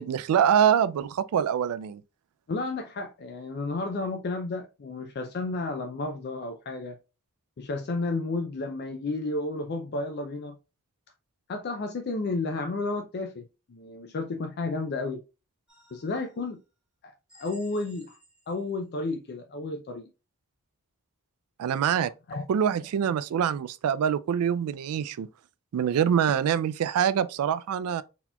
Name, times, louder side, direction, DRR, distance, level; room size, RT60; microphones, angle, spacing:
voice 1, 0.0-2.0 21.6-22.1 22.5-25.3 25.7-28.0, right 8 dB, 80° right, 0.3 m, -25 dB
voice 2, 2.5-7.0 7.6-10.6 11.5-15.2 15.9-16.6 17.0-18.2 18.5-20.1 21.9-22.4, left 3 dB, 45° left, 0.4 m, -32 dB
sound 1, 15.7-16.5 17.3-18.7, right 1 dB, 5° right, 1.5 m, -56 dB
4.1 x 2.8 x 2.2 m
head